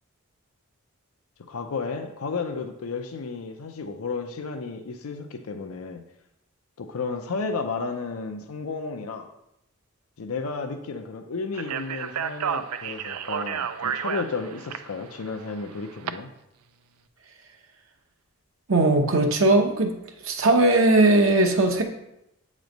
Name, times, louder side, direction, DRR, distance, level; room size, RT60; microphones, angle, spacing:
voice 1, 1.5-6.0 6.8-9.3 10.2-16.3, left 4 dB, 75° left, 5 dB, 0.5 m, -33 dB
Speech, 11.5-16.1, right 8 dB, 90° right, 0.4 m, -31 dB
voice 2, 18.7-19.9 20.2-21.8, right 2 dB, 65° right, 2 dB, 0.8 m, -19 dB
7.9 x 3.1 x 5.1 m, 0.84 s
head